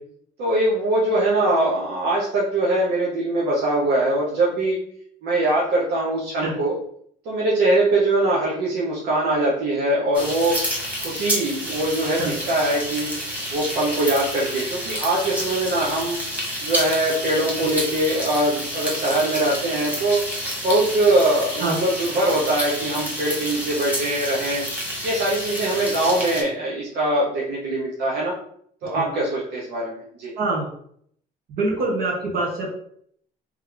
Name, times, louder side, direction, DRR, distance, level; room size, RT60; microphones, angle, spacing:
voice 1, 0.4-4.8 5.2-6.7 7.2-10.6 11.0-13.1 13.5-16.2 16.6-20.2 20.6-24.6 25.0-28.3 28.8-30.3, right 1 dB, 80° right, -5 dB, 1.1 m, -22 dB
sound 1, 10.1-26.4, equal, 10° right, 1.6 m, -29 dB
voice 2, 30.4-30.7 31.5-32.7, right 2 dB, 60° right, -2 dB, 1.6 m, -25 dB
3.4 x 3.2 x 3.8 m, 0.66 s
cardioid pair, 110°, 17 cm